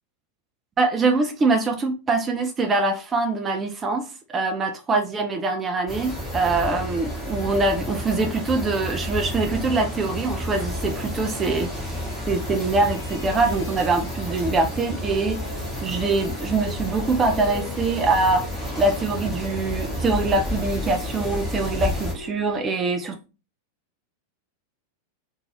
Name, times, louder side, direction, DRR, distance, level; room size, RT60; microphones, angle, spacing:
voice 1, 0.8-11.9 12.3-15.4 15.8-18.5 18.8-23.2, right 3 dB, 20° right, 0.4 m, -23 dB
sound 1, 5.7-22.6, left 3 dB, 65° left, 0.8 m, -42 dB
sound 2, 5.9-22.1, left 1 dB, 5° left, 1.1 m, -31 dB
2.5 x 2.3 x 3.1 m
figure-of-eight pair, 90°, 0 cm